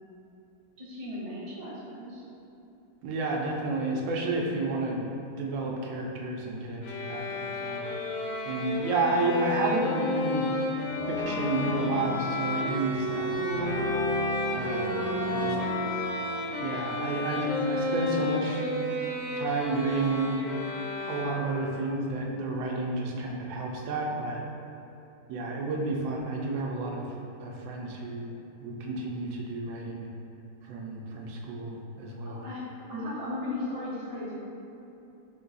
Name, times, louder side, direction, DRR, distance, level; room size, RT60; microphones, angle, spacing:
voice 1, 0.8-2.2 15.0-15.7 16.9-17.3 32.2-32.6 32.9-34.3, left 1 dB, 25° right, -10 dB, 0.8 m, -37 dB
voice 2, 3.0-5.0 5.4-7.8 8.5-10.5 11.1-13.7 14.5-15.0 15.3-15.6 16.6-18.6 19.4-20.4 21.1-24.4 25.3-27.1 27.4-28.3 28.6-30.1 30.7-32.4, right 3 dB, 75° right, -1 dB, 1.3 m, -31 dB
sound 1, 6.8-21.8, left 2 dB, 80° left, 1.4 m, -32 dB
Brass instrument, 10.9-17.7 18.0-18.1, left 1 dB, 55° left, 1.5 m, -34 dB
4.5 x 2.3 x 3.9 m, 2.9 s
omnidirectional pair, 2.2 m